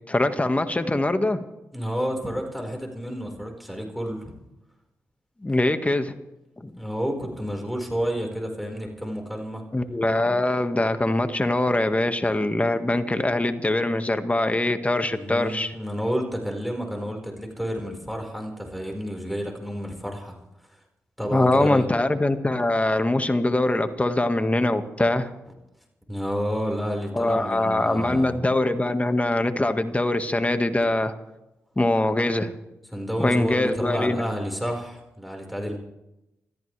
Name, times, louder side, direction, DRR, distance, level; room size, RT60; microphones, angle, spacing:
voice 1, 0.1-1.4 5.4-6.1 6.6-6.7 9.7-15.7 21.3-25.3 27.1-31.1 31.8-32.5 33.2-34.2, left 2 dB, 20° left, 8 dB, 1.8 m, -23 dB
voice 2, 1.7-4.3 6.8-9.6 15.1-20.4 21.2-21.9 26.1-28.4 32.9-35.8, equal, ahead, 1 dB, 5.0 m, -30 dB
27.0 x 14.0 x 3.4 m, 0.93 s
supercardioid pair, 40°, 6 cm